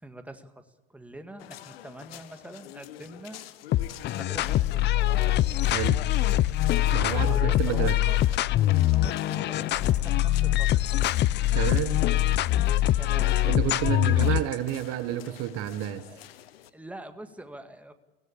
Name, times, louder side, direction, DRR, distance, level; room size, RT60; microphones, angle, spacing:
voice 1, 0.0-3.4 4.1-4.9 7.2-8.2 8.5-10.8 12.6-13.3 14.1-14.2 15.0-15.4 16.4-17.9, right 1 dB, 5° right, 1.9 m, -45 dB
sound 1, 1.4-16.7, left 13 dB, 75° left, 1.3 m, -46 dB
sound 2, 3.7-14.5, left 14 dB, 35° left, 0.6 m, -23 dB
voice 2, 5.6-6.0 6.9-8.0 11.5-12.0 13.5-16.1, right 12 dB, 50° right, 1.3 m, -30 dB
24.5 x 16.5 x 8.6 m
hypercardioid pair, 90°, 30 cm